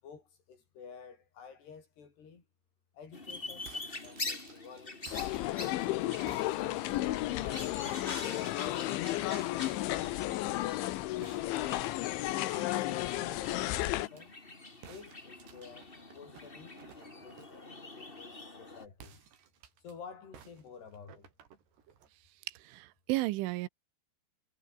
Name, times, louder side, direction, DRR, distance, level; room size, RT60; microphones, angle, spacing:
voice 1, 0.0-2.5 2.9-5.4 6.9-8.7 11.4-13.1 13.4-14.3 14.9-19.3 19.8-21.3, left 6 dB, 55° left, 7.3 m, -52 dB
sound 1, 3.1-18.9, left 2 dB, 20° left, 1.7 m, -45 dB
sound 2, 3.5-7.5 7.9-9.0 11.2-14.2 14.8-17.7 18.9-19.9 20.3-22.1, right 8 dB, 60° right, 5.0 m, -56 dB
sound 3, 5.1-14.1, left 17 dB, 80° left, 3.3 m, -33 dB
voice 2, 22.5-23.7, right 19 dB, 80° right, 3.2 m, -33 dB
omnidirectional pair, 5.7 m